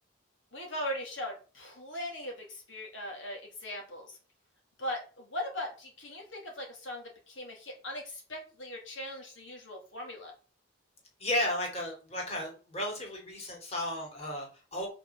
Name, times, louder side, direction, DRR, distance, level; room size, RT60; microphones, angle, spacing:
voice 1, 0.5-4.2 4.8-10.3, left 1 dB, 70° left, 0 dB, 3.6 m, -39 dB
voice 2, 11.2-14.9, left 1 dB, 30° left, 0 dB, 3.6 m, -34 dB
6.9 x 5.9 x 7.4 m, 0.36 s
head